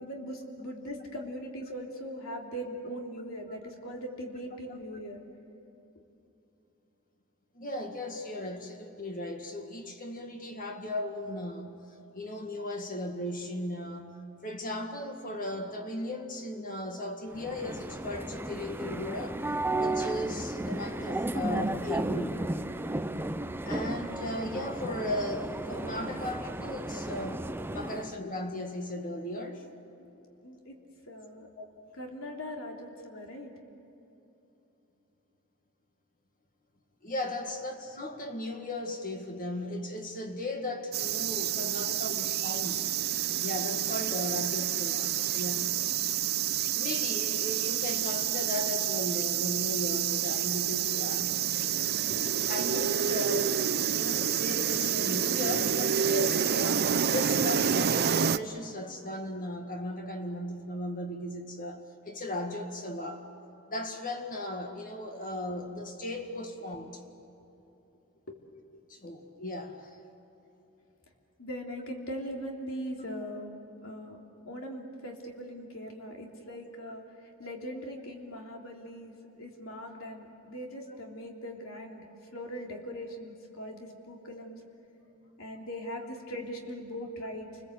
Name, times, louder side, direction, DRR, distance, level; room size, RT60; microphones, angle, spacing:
voice 1, 0.0-5.2 27.9-28.0 30.0-30.1 30.4-30.7 31.1-31.5 32.0-33.5 52.1-52.3 68.3-68.4 71.4-73.6 73.8-74.2 74.4-84.6 85.4-87.6, equal, 70° left, 1 dB, 3.3 m, -40 dB
voice 2, 7.6-11.8 12.1-19.4 19.8-22.5 23.6-29.6 31.6-31.7 37.0-42.9 43.4-45.8 46.8-51.4 52.5-53.6 53.9-63.2 63.7-67.0 68.9-70.0, left 1 dB, 40° left, 3 dB, 2.0 m, -36 dB
sound 1, 17.3-28.2, right 2 dB, 10° right, 0.6 m, -34 dB
sound 2, 40.9-58.4, right 9 dB, 50° right, 0.6 m, -28 dB
29.0 x 21.0 x 8.1 m, 3.0 s
head